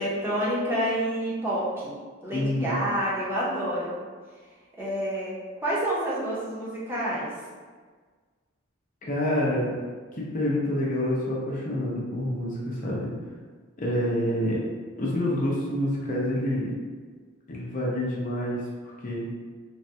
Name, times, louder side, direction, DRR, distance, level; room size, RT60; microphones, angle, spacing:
voice 1, 0.0-1.9 2.2-3.9 4.8-5.3 5.6-7.3, equal, 10° right, -8 dB, 0.6 m, -28 dB
voice 2, 2.3-2.8 9.1-9.7 10.2-13.1 13.8-14.6 15.0-16.7 17.5-18.6 19.0-19.3, left 1 dB, 40° left, -5 dB, 0.6 m, -27 dB
3.4 x 2.1 x 2.7 m, 1.5 s
head